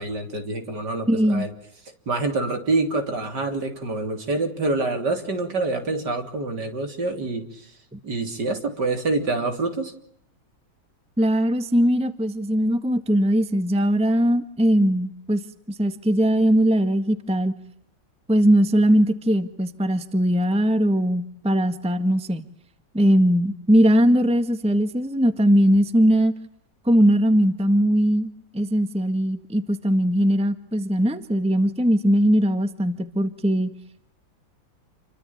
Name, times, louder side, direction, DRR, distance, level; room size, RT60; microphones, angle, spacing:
voice 1, 0.0-1.5 2.1-7.6 8.0-9.9, right 3 dB, 60° right, 6 dB, 3.8 m, -26 dB
voice 2, 1.1-1.5 7.9-8.0 11.2-15.4 15.7-17.5 18.3-22.5 22.9-26.3 26.8-33.7, equal, 5° right, 10 dB, 1.5 m, -20 dB
28.5 x 23.5 x 8.8 m, 0.72 s
omnidirectional pair, 2.1 m